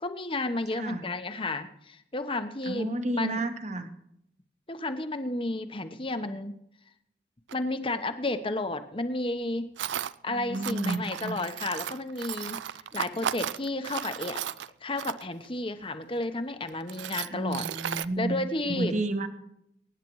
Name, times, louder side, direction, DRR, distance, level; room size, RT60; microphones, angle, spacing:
voice 1, 0.0-2.9 3.2-3.4 4.7-6.5 7.5-9.7 10.2-12.6 12.9-14.4 14.8-17.6 18.2-19.0, left 2 dB, 30° left, 9 dB, 0.9 m, -32 dB
voice 2, 0.7-1.0 2.6-3.9 10.3-11.4 17.3-18.4 18.6-19.3, right 2 dB, 40° right, 8 dB, 1.2 m, -31 dB
Tools, 7.5-7.6 9.8-10.1 10.5-15.5 16.2-16.3 16.7-18.1, right 9 dB, 85° right, 0.4 m, -35 dB
23.5 x 10.0 x 3.1 m, 0.76 s
head